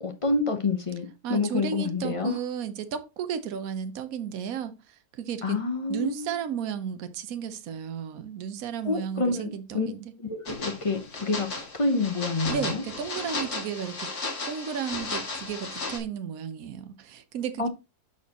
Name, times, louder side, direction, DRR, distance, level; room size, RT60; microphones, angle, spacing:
voice 1, 0.0-2.3 5.4-6.3 8.8-9.9 10.2-12.8 17.6-17.7, left 3 dB, 40° left, 0.4 m, -28 dB
voice 2, 1.2-5.6 5.9-10.1 12.5-14.1 14.4-17.7, right 8 dB, 65° right, 1.2 m, -34 dB
sound 1, 10.5-16.0, left 3 dB, 60° left, 2.4 m, -35 dB
12.0 x 4.3 x 2.9 m
omnidirectional pair, 1.7 m